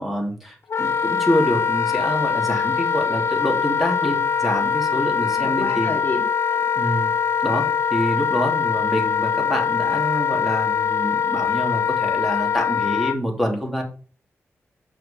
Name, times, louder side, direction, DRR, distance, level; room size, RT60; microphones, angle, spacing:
voice 1, 0.0-5.9 6.7-7.1 7.4-13.8, equal, 5° right, 1 dB, 2.8 m, -26 dB
Wind instrument woodwind instrument, 0.7-13.2, left 7 dB, 60° left, 0.5 m, -22 dB
voice 2, 5.3-6.6, left 2 dB, 40° left, 2 dB, 1.8 m, -31 dB
7.5 x 5.8 x 5.1 m, 0.38 s
cardioid pair, 85°, 5 cm